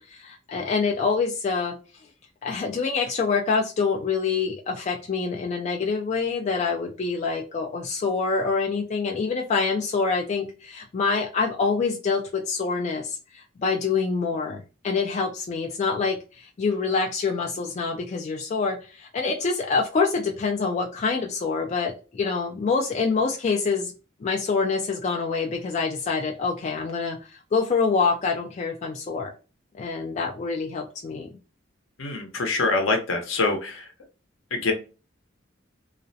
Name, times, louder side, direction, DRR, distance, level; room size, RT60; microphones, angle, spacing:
voice 1, 0.0-1.7 2.4-23.9 24.2-29.3 29.7-31.3, left 4 dB, 35° left, 1 dB, 0.3 m, -26 dB
voice 2, 32.0-33.9 34.5-34.7, left 3 dB, 85° left, 3 dB, 0.6 m, -25 dB
2.4 x 2.0 x 2.5 m, 0.33 s
head